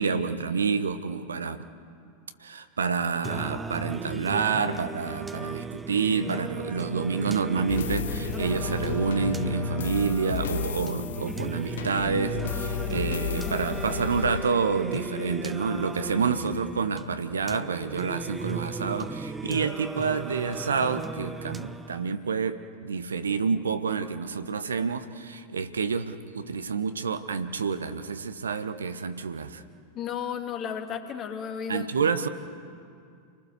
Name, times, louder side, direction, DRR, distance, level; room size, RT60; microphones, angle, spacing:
voice 1, 0.0-1.6 2.4-29.6 31.7-32.3, right 5 dB, 70° right, 10 dB, 1.1 m, -28 dB
Singing, 3.2-22.2, right 4 dB, 10° right, 0.7 m, -36 dB
sound 1, 7.7-14.4, left 9 dB, 60° left, 0.7 m, -33 dB
voice 2, 29.9-32.3, left 8 dB, 30° left, 5 dB, 2.2 m, -34 dB
29.0 x 20.0 x 6.7 m, 2.3 s
figure-of-eight pair, 90°, 0 cm